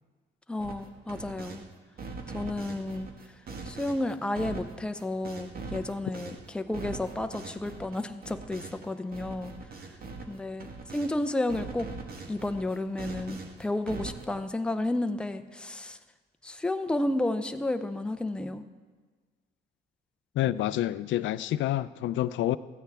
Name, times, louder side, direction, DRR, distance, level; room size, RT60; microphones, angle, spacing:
voice 1, 0.5-1.6 2.3-3.1 3.6-9.5 10.3-11.9 12.3-16.0 16.4-18.7, left 1 dB, 5° left, 8 dB, 0.5 m, -32 dB
sound 1, 0.6-1.6 2.0-11.2 11.5-14.4, right 4 dB, 50° right, 1.4 m, -42 dB
voice 2, 20.4-22.6, left 13 dB, 75° left, 15 dB, 0.4 m, -28 dB
14.0 x 9.0 x 3.5 m, 1.5 s
cardioid pair, 90°, 20 cm